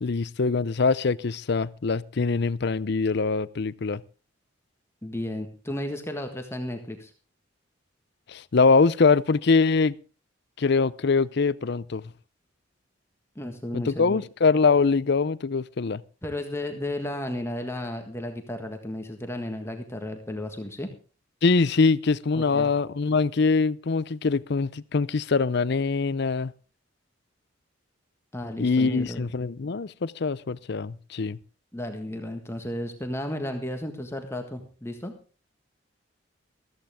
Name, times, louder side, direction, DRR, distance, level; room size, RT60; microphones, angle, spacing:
voice 1, 0.0-4.0 8.3-9.9 10.6-12.0 13.7-16.0 21.4-26.5 28.6-31.4, left 4 dB, 55° left, 0.6 m, -23 dB
voice 2, 5.0-7.1 13.3-14.2 16.2-20.9 22.3-22.7 28.3-29.3 31.7-35.1, left 1 dB, 15° left, 1.6 m, -33 dB
15.0 x 14.5 x 3.6 m
head